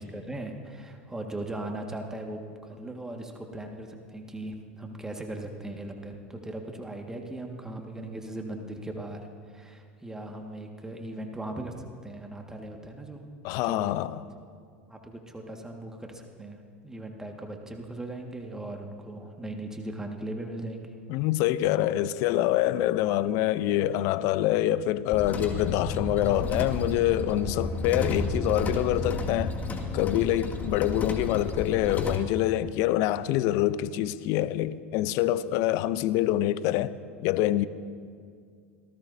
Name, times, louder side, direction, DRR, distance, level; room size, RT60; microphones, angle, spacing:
voice 1, 0.0-13.2 13.6-13.9 14.9-21.0, right 1 dB, 10° right, 1.8 m, -38 dB
voice 2, 13.4-14.2 21.1-29.5 29.9-36.9 37.2-37.7, left 13 dB, 55° left, 0.7 m, -25 dB
sound 1, 25.1-32.2, left 3 dB, 25° left, 2.1 m, -32 dB
26.0 x 19.0 x 2.8 m
hypercardioid pair, 85°, 6 cm